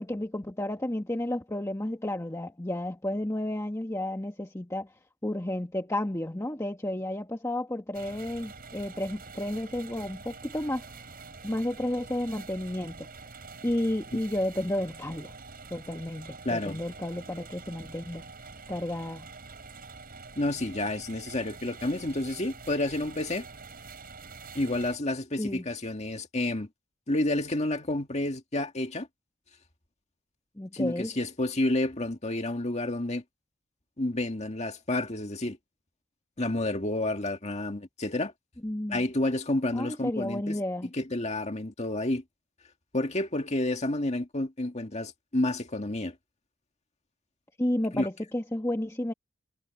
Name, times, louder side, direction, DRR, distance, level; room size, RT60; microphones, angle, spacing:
voice 1, 0.0-4.9 5.2-10.8 11.4-13.1 13.6-15.3 15.7-18.3 18.7-19.3 25.4-25.7 30.6-31.1 38.6-39.0 39.7-40.9 47.6-49.1, left 1 dB, 15° left, 1.2 m, -32 dB
sound 1, 7.9-25.0, right 4 dB, 45° right, 7.5 m, -46 dB
voice 2, 16.4-16.8 20.4-23.5 24.5-26.7 27.1-29.1 30.7-33.2 34.0-35.6 36.4-38.3 38.9-40.6 40.9-42.2 42.9-46.1 47.9-48.1, left 1 dB, 30° left, 2.0 m, -30 dB
head